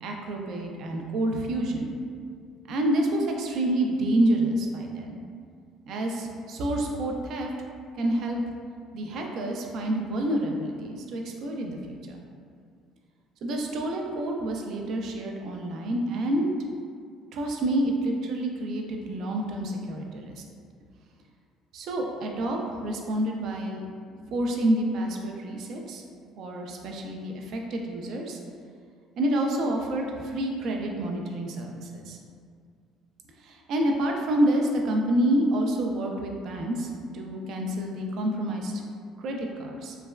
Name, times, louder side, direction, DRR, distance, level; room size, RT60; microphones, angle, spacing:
voice 1, 0.0-1.9 2.7-5.2 5.9-7.5 8.0-8.4 8.9-12.2 13.4-16.5 17.3-20.4 21.7-23.9 24.3-26.0 26.4-28.4 29.2-32.2 33.4-38.8 39.2-40.0, right 1 dB, 60° right, 1 dB, 0.3 m, -28 dB
3.2 x 2.1 x 2.2 m, 2.2 s
cardioid pair, 140°, 0 cm